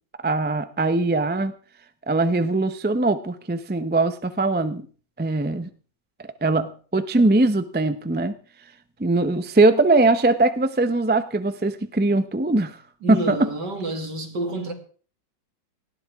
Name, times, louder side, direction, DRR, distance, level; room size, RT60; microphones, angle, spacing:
voice 1, 0.2-1.5 2.1-4.8 5.2-5.7 6.4-8.3 9.0-12.8 13.1-13.4, right 2 dB, 15° right, 0.3 m, -21 dB
voice 2, 13.0-14.7, right 2 dB, 65° right, 3.1 m, -29 dB
18.5 x 16.5 x 3.7 m
omnidirectional pair, 2.0 m